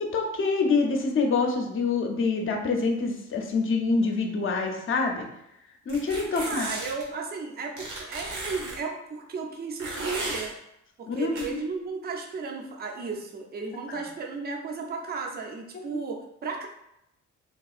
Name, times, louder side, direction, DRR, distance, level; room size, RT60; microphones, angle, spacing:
voice 1, 0.0-5.3 5.9-6.7 11.1-11.6 13.9-14.0 15.7-16.0, left 4 dB, 40° left, 2 dB, 0.6 m, -26 dB
sound 1, 5.9-7.0 7.8-8.8 9.8-10.5 11.4-11.5, right 2 dB, 75° right, 1.1 m, -35 dB
voice 2, 6.3-10.5 11.0-16.7, right 4 dB, 30° right, 1 dB, 0.5 m, -34 dB
3.5 x 2.7 x 2.4 m, 0.82 s
cardioid pair, 100°, 31 cm